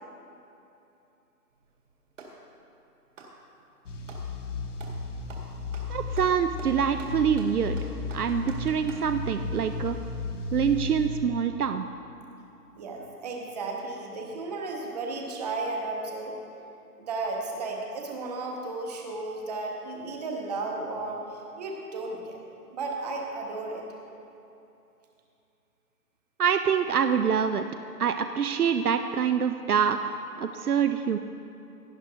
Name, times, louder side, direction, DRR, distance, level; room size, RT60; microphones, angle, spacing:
Clapping, 1.5-2.4 3.1-4.3 4.8-5.0 5.3-9.1, right 3 dB, 50° right, 2.2 m, -48 dB
sound 1, 3.9-11.1, left 3 dB, 50° left, 1.1 m, -34 dB
voice 1, 5.9-10.0 10.5-11.9 26.4-27.7 28.0-31.2, right 7 dB, 70° right, 8 dB, 0.7 m, -25 dB
voice 2, 12.8-16.4 17.0-22.3 22.7-23.8, right 3 dB, 25° right, 0 dB, 1.2 m, -34 dB
17.5 x 10.5 x 2.8 m, 2.8 s
hypercardioid pair, 160°, 48 cm